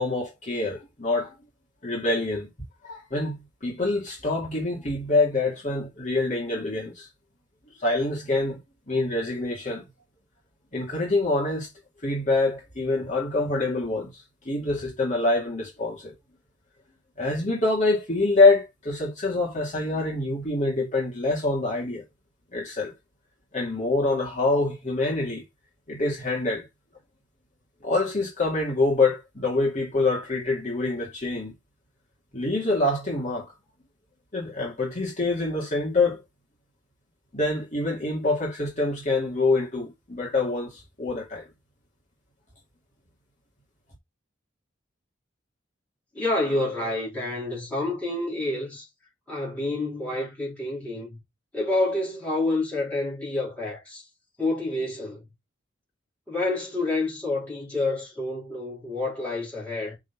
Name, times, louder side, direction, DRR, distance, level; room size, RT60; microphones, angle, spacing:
voice 1, 0.0-1.3 1.8-2.5 2.8-7.1 7.8-8.6 8.9-9.8 10.7-11.7 12.0-16.1 17.2-22.0 22.5-22.9 23.5-25.4 25.9-26.6 27.8-31.5 32.3-33.5 34.3-36.2 37.3-41.5, left 2 dB, 40° left, 2.3 m, -25 dB
voice 2, 46.1-48.9 49.3-51.2 51.5-54.0 54.4-55.3 56.3-60.0, left 2 dB, 5° left, 4.0 m, -28 dB
6.1 x 4.0 x 5.8 m
head